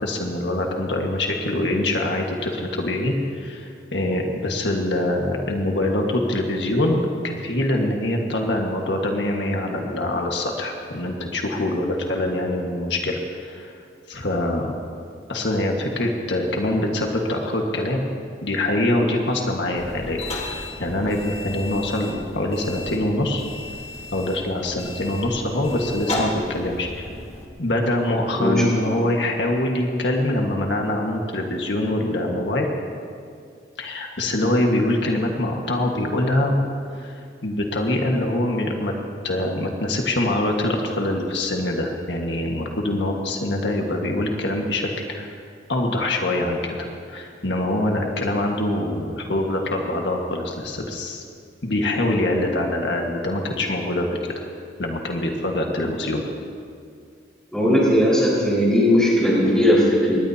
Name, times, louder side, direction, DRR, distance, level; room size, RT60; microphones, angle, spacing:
voice 1, 0.0-13.8 14.1-14.7 15.3-18.1 18.4-23.5 24.1-27.1 27.6-32.7 33.8-36.6 36.9-38.9 39.2-45.3 45.7-51.2 51.6-54.3 54.8-56.2, left 1 dB, 75° left, 1 dB, 1.7 m, -24 dB
sound 1, 19.8-27.5, left 2 dB, 35° left, 1.9 m, -34 dB
voice 2, 57.5-60.2, equal, 5° left, -6 dB, 5.1 m, -18 dB
23.5 x 19.5 x 2.9 m, 2.3 s
head